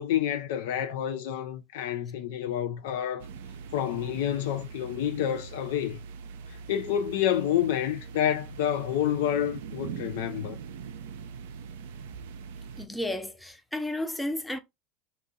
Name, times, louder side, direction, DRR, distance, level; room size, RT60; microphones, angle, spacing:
voice 1, 0.0-3.3 3.7-6.0 6.7-10.6, left 10 dB, 70° left, 0.4 m, -28 dB
sound 1, 3.2-12.9, right 6 dB, 75° right, 0.3 m, -42 dB
voice 2, 12.8-14.6, left 1 dB, 5° left, 0.5 m, -32 dB
2.7 x 2.3 x 2.7 m
hypercardioid pair, 85°, 0 cm